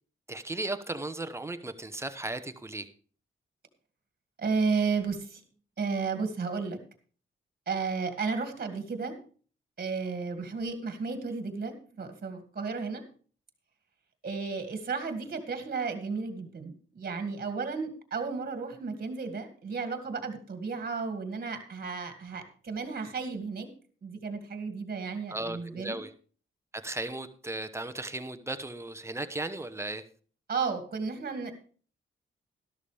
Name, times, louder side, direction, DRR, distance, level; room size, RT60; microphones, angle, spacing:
voice 1, 0.3-2.9 25.3-26.1 26.8-30.0, right 2 dB, 15° right, 10 dB, 0.9 m, -36 dB
voice 2, 4.4-5.4 5.8-6.8 7.7-9.2 9.8-13.0 14.2-23.7 24.0-26.0 30.5-31.5, right 4 dB, 45° right, 6 dB, 2.2 m, -33 dB
13.0 x 12.5 x 3.4 m, 0.41 s
wide cardioid pair, 125°, 21 cm